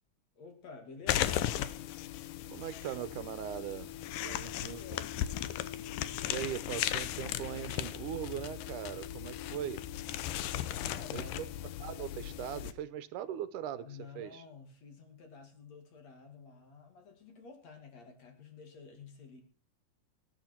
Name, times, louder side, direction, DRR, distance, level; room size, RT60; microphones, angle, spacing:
voice 1, 0.4-1.5 4.2-5.6 10.8-11.5 13.8-19.4, left 5 dB, 55° left, 4 dB, 3.5 m, -51 dB
sound 1, 1.1-12.7, left 12 dB, 85° left, 2.4 m, -37 dB
voice 2, 2.5-3.9 4.2-4.8 6.3-9.8 11.1-11.5 11.8-13.9 14.2-14.4, right 11 dB, 80° right, 14 dB, 2.2 m, -40 dB
19.0 x 9.4 x 4.4 m, 0.42 s
omnidirectional pair, 3.7 m